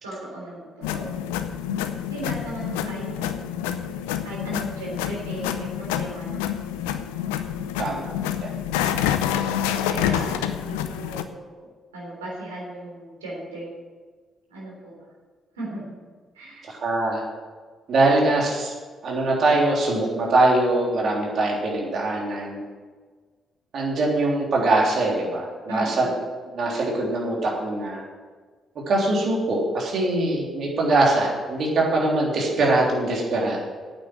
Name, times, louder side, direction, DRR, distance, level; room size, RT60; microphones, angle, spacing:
voice 1, 0.0-1.3 2.1-3.4 4.2-6.6 9.9-11.7 11.9-13.7 14.5-15.1 15.5-16.0 16.3-16.7 25.7-26.1, right 1 dB, 90° right, -4 dB, 3.5 m, -36 dB
sound 1, 0.8-11.2, left 9 dB, 80° left, 0.6 m, -28 dB
voice 2, 7.8-8.1 8.4-8.5 16.7-17.2 17.9-18.7 19.0-22.6 23.7-26.1 26.5-28.0 28.9-33.6, right 2 dB, 60° right, -2 dB, 3.6 m, -22 dB
9.1 x 8.5 x 9.1 m, 1.5 s
hypercardioid pair, 45°, 0 cm